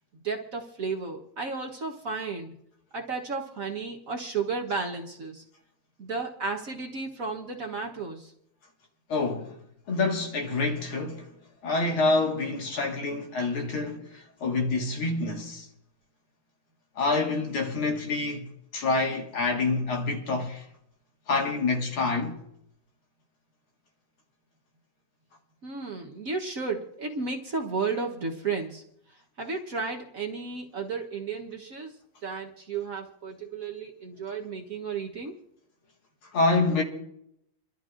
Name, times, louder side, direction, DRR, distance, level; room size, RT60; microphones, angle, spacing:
voice 1, 0.1-2.5 2.9-5.4 6.0-8.3 25.6-28.8 29.4-31.9 32.2-35.3, right 4 dB, 45° right, 1.3 m, -33 dB
voice 2, 9.1-9.6 9.9-11.3 11.6-15.7 17.0-18.5 18.7-20.7 21.3-22.4 36.3-36.8, left 3 dB, 75° left, 2.7 m, -27 dB
28.5 x 12.5 x 2.5 m
omnidirectional pair, 2.3 m